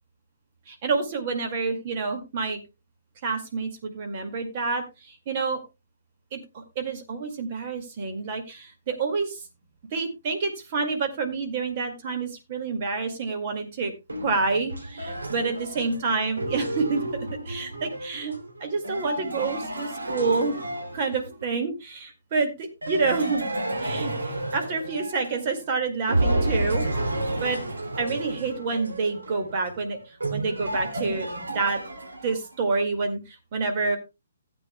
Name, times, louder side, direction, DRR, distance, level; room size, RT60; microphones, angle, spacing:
voice 1, 0.7-2.6 3.2-5.6 6.3-9.4 9.9-13.9 14.2-17.0 17.5-18.3 18.6-20.6 20.9-23.4 23.8-26.9 27.4-27.6 28.0-30.0 30.3-31.8 32.2-34.0, right 4 dB, 35° right, 5 dB, 2.0 m, -28 dB
sound 1, 14.1-21.5 22.8-25.7 26.1-32.5, right 1 dB, 70° right, 2.8 m, -31 dB
16.0 x 8.8 x 2.2 m, 0.24 s
figure-of-eight pair, 130°, 0 cm